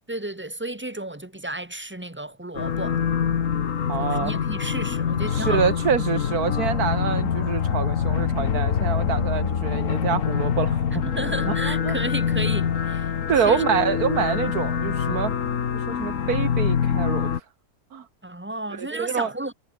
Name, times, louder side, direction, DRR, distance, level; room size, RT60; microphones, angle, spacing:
voice 1, 0.1-3.0 4.0-5.6 11.0-13.1 13.4-13.6 18.2-19.5, right 1 dB, 10° right, 1.2 m, -32 dB
sound 1, 2.5-17.4, left 7 dB, 55° left, 1.6 m, -25 dB
voice 2, 3.9-4.3 5.3-11.0 11.5-12.0 13.3-15.3 15.7-17.3 17.9-18.1 18.8-19.3, right 7 dB, 70° right, 1.9 m, -26 dB
omnidirectional pair, 1.6 m